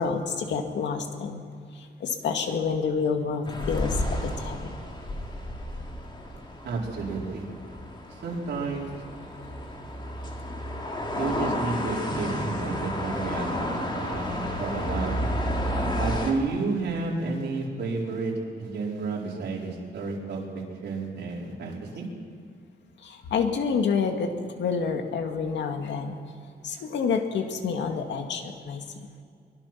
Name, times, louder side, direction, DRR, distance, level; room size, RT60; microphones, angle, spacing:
voice 1, 0.0-1.4 1.7-4.8 23.0-26.2 26.6-28.8, left 5 dB, 90° left, 5 dB, 2.2 m, -28 dB
sound 1, 3.4-16.3, equal, 25° left, 2.8 m, -31 dB
voice 2, 6.6-7.5 8.2-8.9 11.2-15.2 16.0-18.3 18.6-22.1, right 4 dB, 75° right, -3 dB, 4.8 m, -31 dB
23.0 x 22.5 x 6.0 m, 2.2 s
wide cardioid pair, 145°, 18 cm